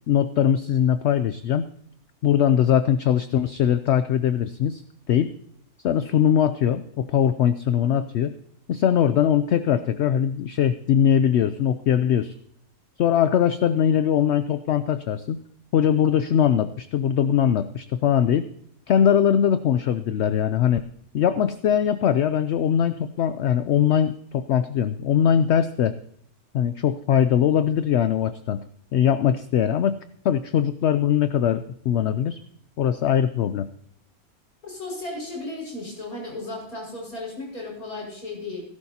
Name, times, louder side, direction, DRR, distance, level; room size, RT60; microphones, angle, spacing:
voice 1, 0.1-1.7 2.2-4.8 5.1-5.3 5.8-8.3 8.7-12.3 13.0-15.4 15.7-18.5 18.9-20.8 21.1-25.9 26.5-28.6 28.9-30.0 30.2-32.4 32.8-33.7, left 9 dB, 65° left, 11 dB, 0.7 m, -21 dB
voice 2, 34.6-38.6, left 2 dB, 85° left, -2 dB, 6.0 m, -35 dB
18.0 x 11.5 x 2.8 m, 0.70 s
omnidirectional pair, 1.5 m